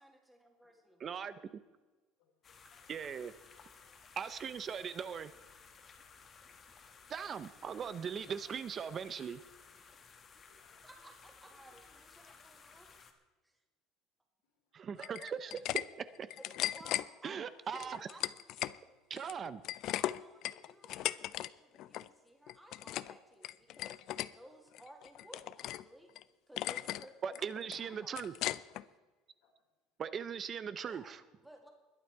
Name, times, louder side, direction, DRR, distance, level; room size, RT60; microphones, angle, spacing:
voice 1, 0.0-1.1 10.8-12.9 13.4-13.6 16.7-17.4 17.7-18.3 18.6-19.0 19.7-24.0 24.3-26.1 26.5-28.2 30.8-31.1 31.4-31.7, equal, 5° right, 2 dB, 2.0 m, -57 dB
voice 2, 1.0-1.4 2.9-3.3 4.2-5.3 7.1-9.4 14.7-15.6 16.0-16.3 17.2-18.1 19.1-19.6 27.2-28.3 30.0-31.2, right 7 dB, 25° right, 14 dB, 0.5 m, -39 dB
voice 3, 2.2-2.9 3.7-4.0 6.6-7.1 9.8-10.0 10.5-10.8 11.7-11.9 14.4-14.6 28.7-28.8 29.4-29.5, left 6 dB, 80° left, 3 dB, 3.9 m, -72 dB
sound 1, 2.4-13.1, left 5 dB, 25° left, 1.4 m, -58 dB
sound 2, 15.0-15.8 16.2-17.1 17.8-18.8 19.1-21.5 21.8-22.1 22.5-23.1 23.4-24.3 24.7-25.8 26.2-26.3 26.6-27.0 27.4-28.8, left 14 dB, 50° left, 0.4 m, -37 dB
21.5 x 8.7 x 4.6 m, 1.2 s
cardioid pair, 160°, 0 cm